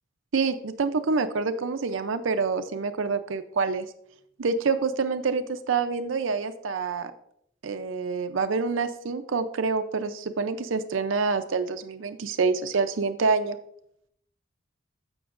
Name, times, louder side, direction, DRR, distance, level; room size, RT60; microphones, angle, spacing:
voice 1, 0.3-3.9 4.4-7.1 7.6-13.6, right 4 dB, 80° right, 9 dB, 0.5 m, -27 dB
14.5 x 6.1 x 2.5 m, 0.72 s
head